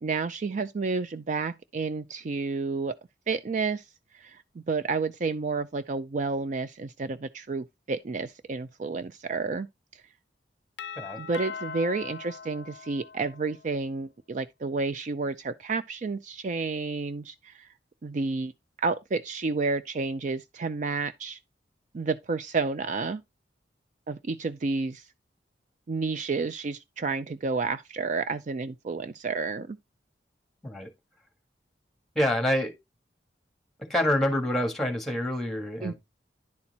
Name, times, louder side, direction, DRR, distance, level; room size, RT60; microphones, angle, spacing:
voice 1, 0.0-2.9 3.3-3.9 4.1-9.7 11.2-17.7 18.0-18.5 18.8-21.4 21.9-23.2 24.1-25.1 25.9-29.8 35.8-35.9, right 4 dB, 45° right, 0.4 m, -30 dB
Doorbell, 10.8-13.6, left 6 dB, 85° left, 0.5 m, -40 dB
voice 2, 32.1-32.7 33.8-35.9, left 1 dB, ahead, 1.7 m, -27 dB
10.5 x 4.3 x 4.1 m
head